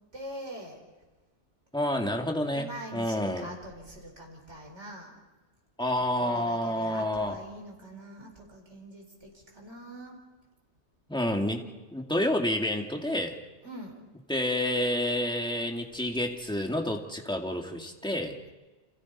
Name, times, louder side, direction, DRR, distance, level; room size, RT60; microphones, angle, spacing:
voice 1, 0.1-0.8 2.5-5.2 6.2-10.2 13.6-14.0, right 1 dB, 75° right, 1 dB, 4.9 m, -43 dB
voice 2, 1.7-3.5 5.8-7.4 11.1-13.4 14.3-18.4, left 1 dB, 5° left, 1 dB, 2.2 m, -29 dB
29.5 x 27.5 x 4.3 m, 1.2 s
omnidirectional pair, 1.2 m